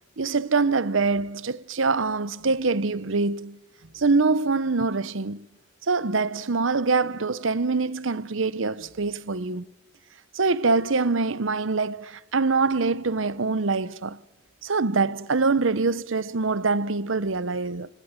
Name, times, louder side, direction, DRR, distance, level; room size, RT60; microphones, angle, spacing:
voice 1, 0.2-3.6 3.9-5.4 5.9-9.6 10.3-14.2 14.6-17.9, right 4 dB, 80° right, 0.9 m, -24 dB
28.0 x 19.0 x 9.9 m
head